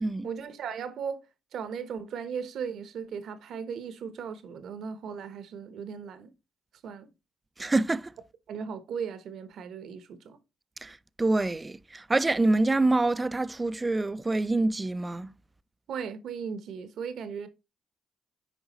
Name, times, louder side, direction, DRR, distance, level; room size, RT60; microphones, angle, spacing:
voice 1, 0.2-1.2 1.5-6.3 6.8-7.1 8.5-10.4 15.9-17.5, right 6 dB, 70° right, 1.0 m, -37 dB
voice 2, 7.6-8.1 10.8-15.3, right 2 dB, 20° right, 0.3 m, -26 dB
8.1 x 5.0 x 3.0 m
cardioid pair, 90°, 0 cm